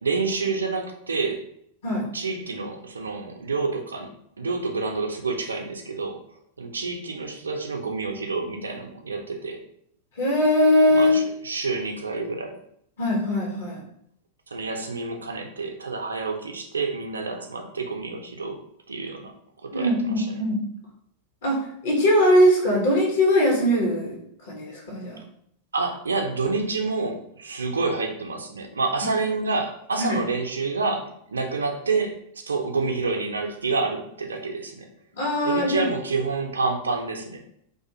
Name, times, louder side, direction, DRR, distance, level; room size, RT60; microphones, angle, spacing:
voice 1, 0.0-1.5 2.1-4.1 4.4-6.2 6.6-9.6 10.9-12.6 14.5-18.6 18.9-19.3 19.6-20.2 25.7-34.9 35.4-37.4, right 4 dB, 75° right, 4 dB, 0.4 m, -28 dB
voice 2, 10.2-11.2 13.0-13.8 19.7-20.7 21.4-24.2 24.5-25.2 30.0-30.2 35.1-35.9, equal, 60° left, -1 dB, 0.9 m, -21 dB
2.4 x 2.3 x 2.7 m, 0.70 s
figure-of-eight pair, 90°, 0 cm